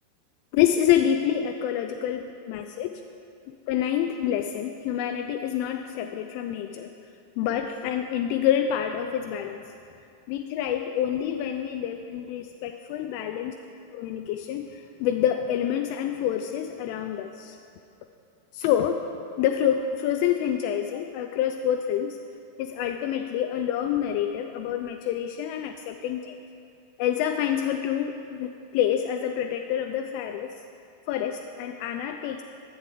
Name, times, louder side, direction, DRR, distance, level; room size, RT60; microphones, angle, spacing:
voice 1, 0.5-3.0 3.7-6.9 7.4-9.6 10.3-13.5 13.9-17.6 18.5-19.1 19.4-22.2 22.6-26.2 27.0-30.5 31.1-32.4, left 10 dB, 45° left, 6 dB, 0.4 m, -27 dB
11.5 x 8.1 x 3.8 m, 2.4 s
figure-of-eight pair, 90°, 0 cm